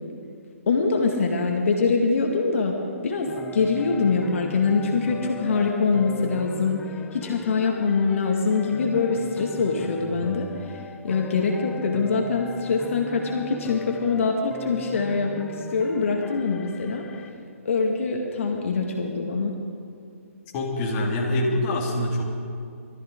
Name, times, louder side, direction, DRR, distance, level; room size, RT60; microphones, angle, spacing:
voice 1, 0.7-2.8 3.0-17.3 17.6-19.5, left 4 dB, 60° left, 1 dB, 1.9 m, -24 dB
sound 1, 3.3-17.3, left 6 dB, 10° left, 0.4 m, -40 dB
voice 2, 20.5-22.2, left 1 dB, 30° left, -2 dB, 2.6 m, -25 dB
21.5 x 13.5 x 3.9 m, 2.3 s
hypercardioid pair, 145°, 8 cm